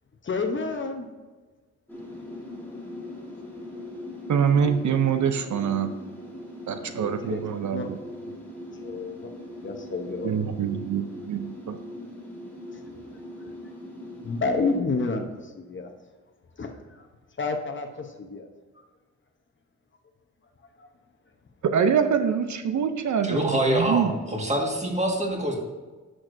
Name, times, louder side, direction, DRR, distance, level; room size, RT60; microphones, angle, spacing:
voice 1, 0.2-1.1 6.7-7.9 8.8-9.3 9.6-10.3 14.2-15.9 16.6-16.7 17.4-18.5 20.8-20.9, left 3 dB, 40° left, 4 dB, 0.9 m, -30 dB
sound 1, 1.9-14.8, left 1 dB, 5° left, 1.8 m, -40 dB
voice 2, 4.3-5.9 6.7-8.0 10.2-11.8 21.6-24.1, right 7 dB, 70° right, 9 dB, 0.6 m, -25 dB
voice 3, 23.2-25.5, right 1 dB, 20° right, 0 dB, 1.7 m, -25 dB
10.5 x 6.2 x 2.6 m, 1.3 s
wide cardioid pair, 115°, 31 cm